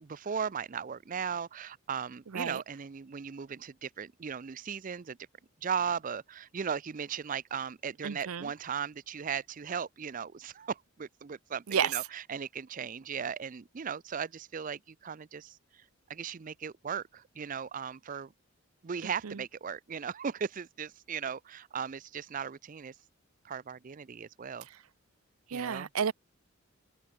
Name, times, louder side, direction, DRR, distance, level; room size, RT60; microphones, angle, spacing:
voice 1, 0.0-5.2 5.6-15.6 16.1-18.3 18.8-22.9 23.4-24.7 25.5-25.9, right 7 dB, 40° right, 0.4 m, -37 dB
voice 2, 8.0-8.5 11.7-12.0 19.2-19.4 25.5-26.1, right 7 dB, 85° right, 0.6 m, -31 dB
open air
head